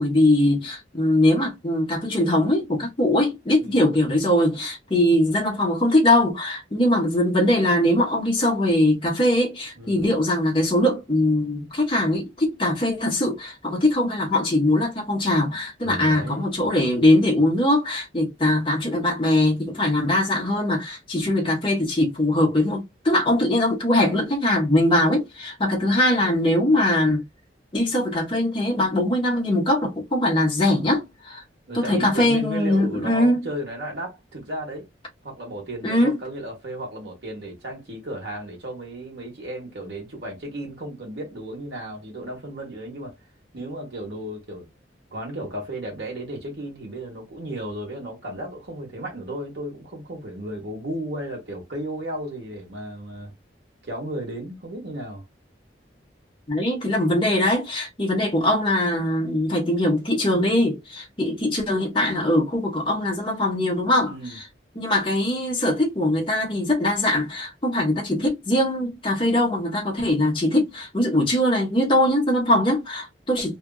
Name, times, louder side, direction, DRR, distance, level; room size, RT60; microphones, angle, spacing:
voice 1, 0.0-27.2 27.7-31.4 31.7-33.4 35.8-36.2 56.5-64.1 64.8-73.6, left 1 dB, 25° left, 1.0 m, -21 dB
voice 2, 3.6-3.9 9.8-10.1 15.8-16.7 31.7-34.9 35.2-43.2 43.5-44.7 45.1-53.3 53.8-55.2 64.0-64.4, right 1 dB, 65° right, 1.2 m, -34 dB
2.8 x 2.5 x 2.3 m
head